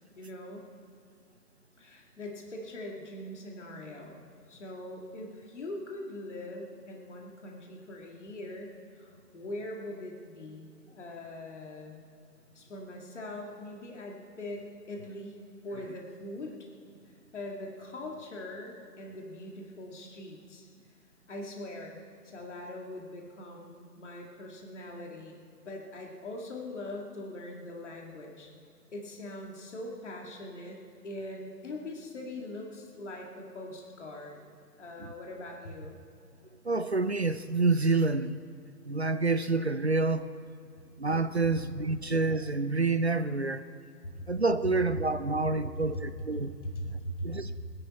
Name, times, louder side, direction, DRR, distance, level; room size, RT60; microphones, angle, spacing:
voice 1, 0.2-0.7 1.8-4.2 4.5-12.0 12.5-15.4 15.6-16.5 17.3-20.7 21.3-22.0 22.2-28.5 28.9-34.4 34.8-36.0 44.2-44.3 45.6-45.8 46.6-47.5, left 1 dB, 45° left, 0 dB, 2.2 m, -42 dB
voice 2, 36.6-38.4 38.9-40.3 41.0-43.7 44.3-46.5 46.8-47.0 47.2-47.6, right 3 dB, 45° right, 13 dB, 0.5 m, -28 dB
28.5 x 11.0 x 4.3 m, 2.4 s
hypercardioid pair, 175°, 49 cm